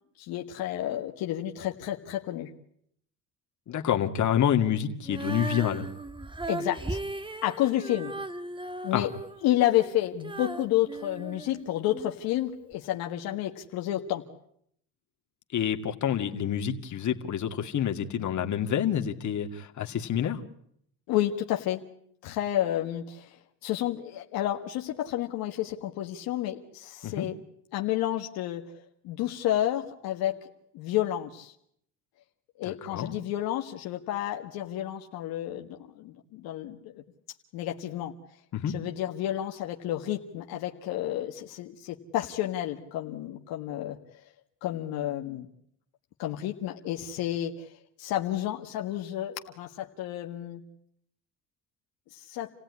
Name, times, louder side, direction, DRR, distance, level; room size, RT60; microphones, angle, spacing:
voice 1, 0.2-2.5 6.5-7.0 7.4-8.1 8.8-9.1 9.4-14.2 21.1-21.8 22.2-23.3 23.6-27.4 27.7-28.6 29.0-30.4 30.7-31.5 32.6-37.0 37.5-38.1 38.7-44.0 44.6-45.5 46.2-47.7 48.0-50.6 52.1-52.5, left 13 dB, 85° left, 2 dB, 1.8 m, -30 dB
voice 2, 3.7-5.9 8.9-9.1 15.5-20.4 27.0-27.3 32.6-33.1 38.5-38.7, left 9 dB, 55° left, 5 dB, 2.4 m, -28 dB
Female singing, 5.0-12.1 12.7-12.8, right 2 dB, 15° right, 1.5 m, -37 dB
29.0 x 16.5 x 9.8 m, 0.71 s
cardioid pair, 90°, 35 cm